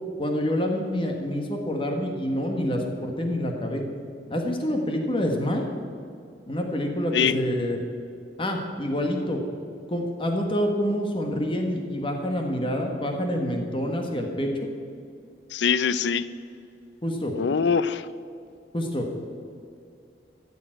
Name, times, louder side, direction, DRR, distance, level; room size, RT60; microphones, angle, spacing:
voice 1, 0.2-3.8 4.3-5.7 6.5-7.8 8.4-9.4 9.9-14.5 17.0-17.3 18.7-19.1, equal, 30° left, 2 dB, 1.4 m, -27 dB
voice 2, 15.5-16.3 17.3-18.1, left 6 dB, 80° left, 15 dB, 0.5 m, -23 dB
14.0 x 7.1 x 9.0 m, 2.4 s
head